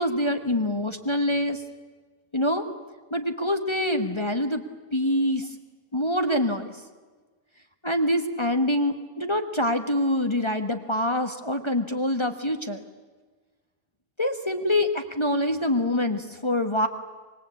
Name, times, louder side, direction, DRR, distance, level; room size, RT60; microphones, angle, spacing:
voice 1, 0.0-1.6 2.3-2.6 3.1-4.6 4.9-5.5 5.9-6.7 7.8-12.8 14.2-16.9, left 1 dB, 20° left, 6 dB, 1.3 m, -25 dB
25.5 x 22.0 x 8.4 m, 1.4 s
omnidirectional pair, 1.5 m